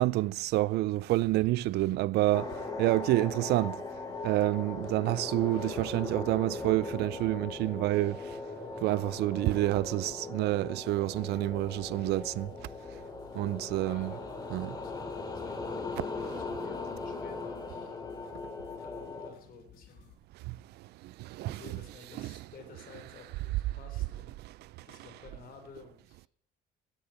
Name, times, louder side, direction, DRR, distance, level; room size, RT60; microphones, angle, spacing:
voice 1, 0.0-3.8 4.2-8.4 8.8-12.5 13.3-14.1 14.5-14.7 20.5-20.6 21.0-21.6 22.2-22.3 24.4-24.7, right 17 dB, 75° right, 0.4 m, -28 dB
sound 1, 2.3-19.3, left 3 dB, 20° left, 3.1 m, -39 dB
sound 2, 11.4-20.1, left 10 dB, 80° left, 5.2 m, -56 dB
voice 2, 13.8-18.0 18.8-20.1 21.4-24.4 24.8-26.3, left 5 dB, 60° left, 3.9 m, -52 dB
16.0 x 10.5 x 5.8 m
cardioid pair, 110°, 17 cm